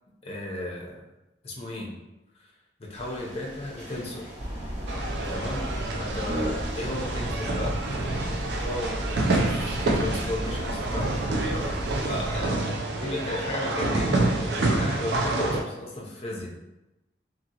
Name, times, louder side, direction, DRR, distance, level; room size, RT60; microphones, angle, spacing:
voice 1, 0.2-1.0 1.4-1.9 2.4-2.5 2.8-4.3 5.3-5.6 6.0-7.8 8.4-8.9 9.2-11.3 12.0-16.5, left 1 dB, 35° left, -2 dB, 0.6 m, -34 dB
sound 1, 2.9-12.2, right 1 dB, 85° right, 1.0 m, -45 dB
sound 2, 4.4-12.5, equal, 35° right, 0.8 m, -34 dB
sound 3, 4.9-15.6, right 2 dB, 70° right, 0.4 m, -28 dB
2.8 x 2.8 x 2.8 m, 0.98 s
head